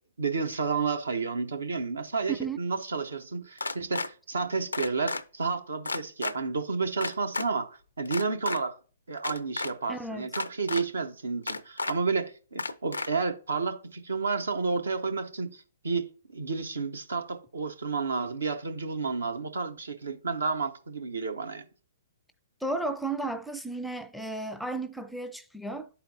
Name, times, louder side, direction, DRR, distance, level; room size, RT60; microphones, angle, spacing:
voice 1, 0.2-8.8 9.1-21.6, right 4 dB, 75° right, 0.8 m, -31 dB
voice 2, 2.3-2.6 9.9-10.3 22.6-25.9, right 3 dB, ahead, 0.4 m, -33 dB
sound 1, 3.6-4.1 4.7-5.2 5.8-6.3 7.0-7.5 8.1-8.6 9.2-9.7 10.3-10.8 11.5-11.9 12.6-13.1, left 3 dB, 85° left, 0.4 m, -32 dB
11.0 x 4.3 x 2.7 m
figure-of-eight pair, 120°, 0 cm